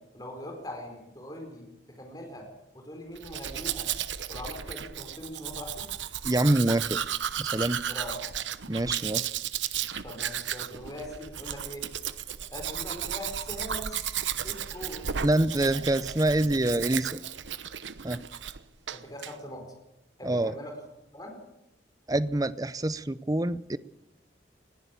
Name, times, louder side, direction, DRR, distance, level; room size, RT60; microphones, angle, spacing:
voice 1, 0.1-2.4 2.7-3.9 4.3-5.8 7.9-8.2 10.0-11.9 12.5-14.0 14.4-15.1 18.9-19.7 20.2-20.7 21.1-21.4, equal, 20° left, 2 dB, 4.7 m, -41 dB
Domestic sounds home sounds, 3.2-18.6 18.9-19.3, right 9 dB, 90° right, 1.0 m, -34 dB
voice 2, 6.2-7.0 7.4-7.8 8.7-9.3 15.2-17.2 18.0-18.2 20.2-20.5 22.1-23.8, right 1 dB, 20° right, 16 dB, 0.6 m, -26 dB
21.0 x 15.5 x 8.4 m, 0.90 s
head